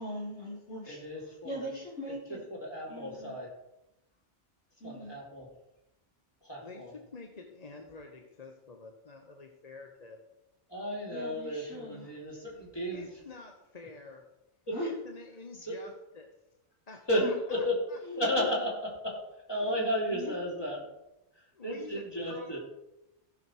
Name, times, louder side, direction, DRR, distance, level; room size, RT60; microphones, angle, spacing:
voice 1, 0.0-1.0 1.4-2.4 2.9-3.4 4.8-5.2 11.1-12.1 14.7-14.9 17.2-17.3 18.0-18.5 19.6-19.7 20.1-20.4 21.8-21.9, left 1 dB, 80° left, -3 dB, 3.1 m, -40 dB
voice 2, 0.9-1.7 2.3-3.5 4.8-5.5 6.4-6.9 10.7-13.1 14.7-14.8 15.6-15.9 17.1-17.8 18.2-20.9 21.4-22.6, equal, 20° left, -3 dB, 3.0 m, -33 dB
voice 3, 6.6-10.2 12.9-14.3 14.8-16.3 16.9-18.0 21.5-22.6, left 3 dB, 40° left, 3 dB, 1.0 m, -48 dB
15.5 x 6.2 x 4.5 m, 0.92 s
omnidirectional pair, 1.2 m